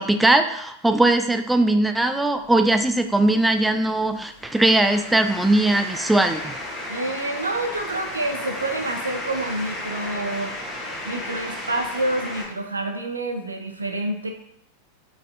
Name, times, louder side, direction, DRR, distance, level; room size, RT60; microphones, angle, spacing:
voice 1, 0.0-6.5, right 2 dB, 5° right, 7 dB, 0.3 m, -20 dB
sound 1, 2.4-12.5, left 1 dB, 15° left, 1.2 m, -34 dB
voice 2, 6.9-10.5 11.0-14.3, right 2 dB, 80° right, 5 dB, 0.6 m, -28 dB
4.8 x 4.2 x 2.5 m, 0.74 s
figure-of-eight pair, 90°, 0 cm